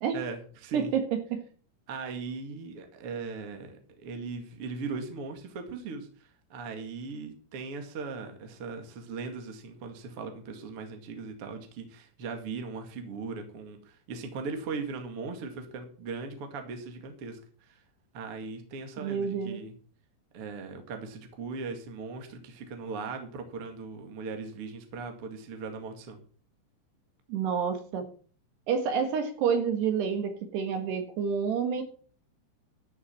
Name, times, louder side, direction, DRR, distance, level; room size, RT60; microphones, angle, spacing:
voice 1, 0.1-0.9 1.9-17.8 18.1-19.7 20.3-26.2, right 4 dB, 45° right, 5 dB, 2.0 m, -39 dB
voice 2, 0.7-1.4 19.0-19.6 27.3-28.1 28.7-31.8, right 7 dB, 65° right, 7 dB, 3.2 m, -28 dB
13.5 x 7.2 x 5.7 m, 0.42 s
omnidirectional pair, 5.8 m